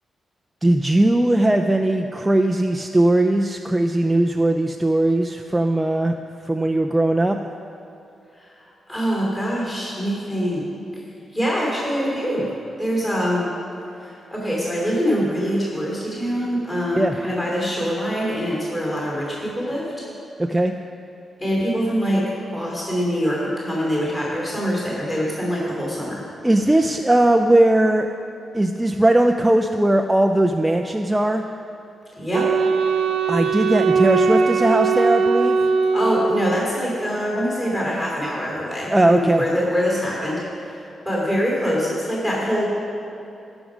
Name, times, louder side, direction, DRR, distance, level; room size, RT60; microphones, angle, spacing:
voice 1, 0.6-6.1 6.4-7.4 17.0-17.2 20.4-20.7 26.4-28.1 28.5-31.4 33.3-35.7 38.9-39.4, right 1 dB, 10° right, 3 dB, 0.3 m, -19 dB
voice 2, 8.9-10.6 11.3-13.5 14.0-19.9 21.4-26.3 32.2-32.5 35.9-42.6, equal, 15° left, -4 dB, 2.7 m, -24 dB
Wind instrument woodwind instrument, 32.3-36.8, right 5 dB, 75° right, 0.6 m, -20 dB
16.5 x 6.2 x 4.9 m, 2.7 s
wide cardioid pair, 175°, 0 cm